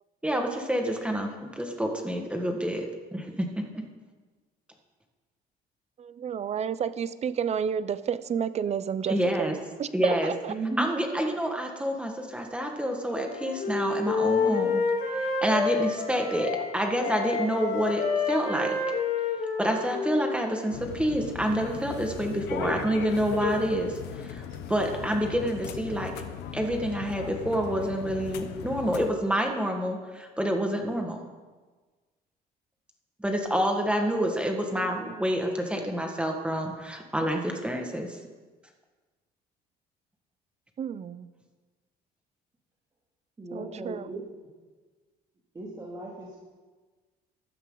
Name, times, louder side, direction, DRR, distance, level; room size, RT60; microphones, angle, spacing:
voice 1, 0.2-2.9 3.1-3.8 9.1-9.6 9.9-10.3 10.8-14.8 15.1-18.8 19.6-26.2 26.5-31.2 33.2-38.2, equal, 5° right, 2 dB, 1.7 m, -28 dB
voice 2, 6.0-10.5 34.8-35.2 40.8-41.3 43.5-44.1, right 7 dB, 40° right, 15 dB, 0.6 m, -31 dB
voice 3, 10.5-10.9 43.4-44.2 45.5-46.4, right 3 dB, 25° right, -5 dB, 2.7 m, -35 dB
Wind instrument woodwind instrument, 13.1-16.7 17.0-20.8, left 5 dB, 60° left, 4.2 m, -29 dB
sound 1, 20.7-29.1, left 8 dB, 85° left, 1.0 m, -37 dB
15.5 x 12.5 x 4.0 m, 1.3 s
cardioid pair, 110°, 17 cm